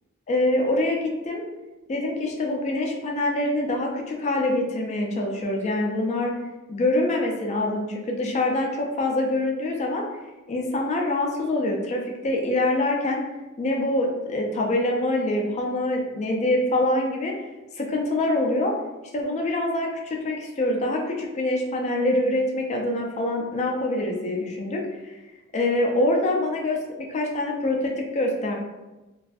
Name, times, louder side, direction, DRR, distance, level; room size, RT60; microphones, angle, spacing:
voice 1, 0.3-1.4 1.9-6.3 6.7-10.0 10.5-13.2 13.6-17.3 17.8-18.7 19.1-25.1 25.5-26.8 27.1-28.5, left 1 dB, 30° left, 0 dB, 0.3 m, -25 dB
2.5 x 2.3 x 2.3 m, 1.1 s
head